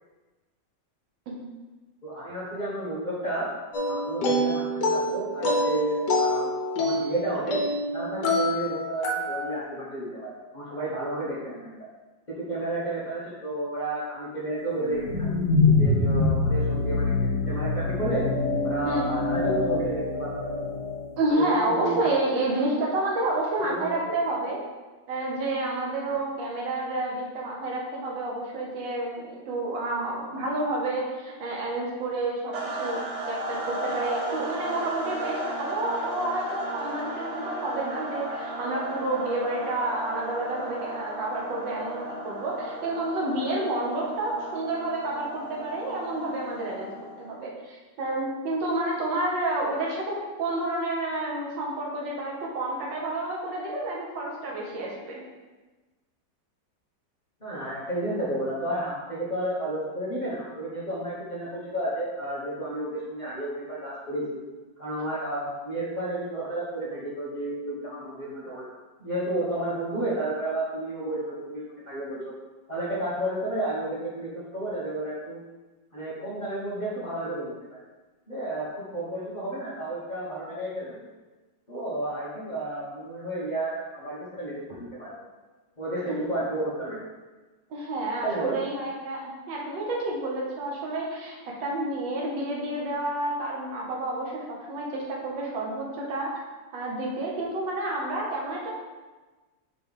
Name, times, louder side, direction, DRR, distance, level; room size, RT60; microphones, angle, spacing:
voice 1, 2.0-3.5 3.8-7.6 7.9-11.7 12.4-15.3 15.8-17.1 17.4-18.2 18.6-20.4 21.3-22.1 23.5-24.2 26.0-26.1 57.4-64.4 64.8-68.6 69.0-72.3 72.7-75.4 75.9-77.8 78.3-78.7 78.9-81.1 81.7-85.2 85.8-87.0 88.2-88.6, right 1 dB, 25° left, -10 dB, 1.3 m, -32 dB
sound 1, 3.7-9.6, left 1 dB, 70° left, 1.5 m, -27 dB
sound 2, 14.8-21.1, left 3 dB, 55° left, 1.3 m, -25 dB
voice 2, 21.2-24.6 25.1-32.5 32.8-33.0 33.3-46.9 47.2-55.2 86.1-86.2 87.7-96.3 96.7-98.7, right 2 dB, 80° right, -3 dB, 1.7 m, -30 dB
sound 3, 32.5-47.3, right 1 dB, 65° right, 1.2 m, -35 dB
5.2 x 3.3 x 5.4 m, 1.2 s
omnidirectional pair, 1.9 m